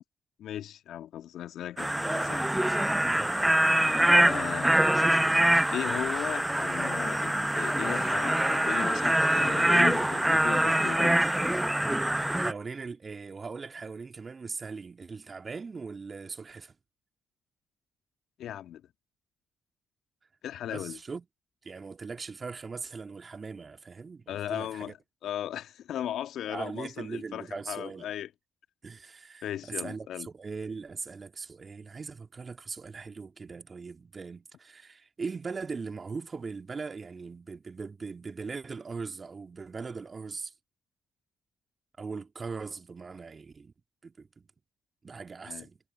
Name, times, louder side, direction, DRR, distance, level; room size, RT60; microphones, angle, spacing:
voice 1, 0.4-2.4 4.2-4.8 5.7-11.2 18.4-18.8 20.4-21.0 24.3-24.9 25.2-28.3 29.4-30.3 45.5-45.7, left 11 dB, 70° left, 1.6 m, -36 dB
sound 1, 1.8-12.5, right 1 dB, 10° right, 0.7 m, -24 dB
voice 2, 12.1-16.7 20.7-21.3 21.6-24.9 26.5-28.1 28.8-40.5 42.0-43.7 44.0-44.5 45.0-45.8, right 4 dB, 40° right, 2.5 m, -40 dB
hypercardioid pair, 45°, 0 cm